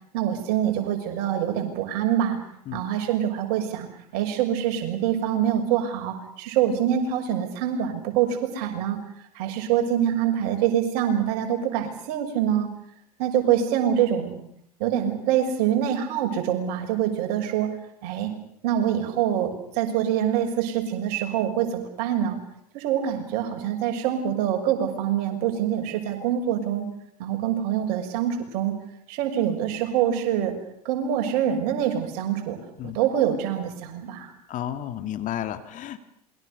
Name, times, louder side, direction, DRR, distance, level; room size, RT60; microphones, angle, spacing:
voice 1, 0.1-2.4 2.7-9.0 9.3-12.7 13.2-14.4 14.8-17.7 18.0-18.3 18.6-22.4 22.7-26.9 27.2-28.8 29.1-30.5 30.8-34.3, right 10 dB, 55° right, 4 dB, 6.3 m, -25 dB
voice 2, 34.5-36.0, left 11 dB, 40° left, 10 dB, 2.4 m, -32 dB
27.5 x 22.5 x 6.9 m, 0.70 s
hypercardioid pair, 85°, 20 cm